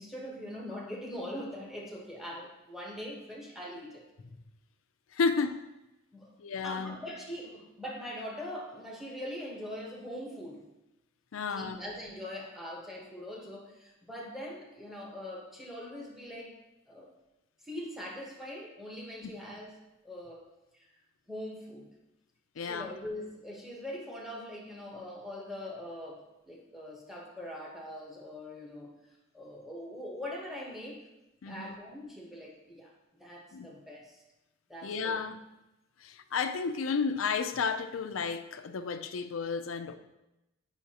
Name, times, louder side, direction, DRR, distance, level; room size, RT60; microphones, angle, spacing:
voice 1, 0.0-4.0 6.1-6.4 6.6-10.6 11.5-16.6 16.9-17.1 17.6-19.7 20.0-20.4 20.7-20.9 21.3-21.9 22.6-29.0 29.3-31.1 31.4-32.9 33.2-34.2 34.7-35.2, left 1 dB, ahead, 1.1 m, -42 dB
voice 2, 5.1-5.6 6.4-7.0 11.3-11.8 19.2-19.3 22.6-22.9 31.4-31.8 33.5-33.7 34.8-35.4 36.0-40.0, left 5 dB, 80° left, 0.5 m, -32 dB
8.1 x 5.5 x 2.9 m
head